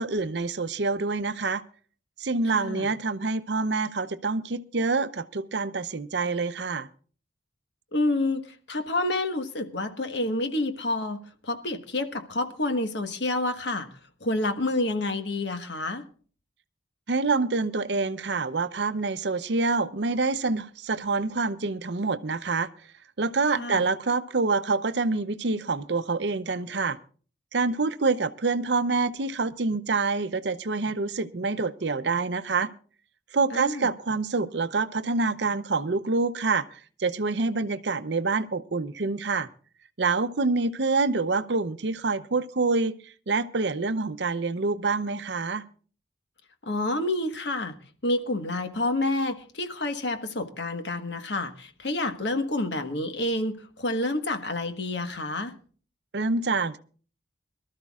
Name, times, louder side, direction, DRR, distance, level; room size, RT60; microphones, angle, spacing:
voice 1, 0.0-1.6 2.2-6.9 17.1-22.7 23.2-27.0 27.5-32.7 33.3-39.5 40.0-45.6 56.1-56.8, right 3 dB, 65° right, 0.7 m, -26 dB
voice 2, 2.5-2.9 7.9-16.1 23.5-23.8 33.5-33.9 46.6-47.7 48.0-55.6, left 2 dB, 65° left, 1.3 m, -29 dB
23.0 x 13.0 x 2.4 m
head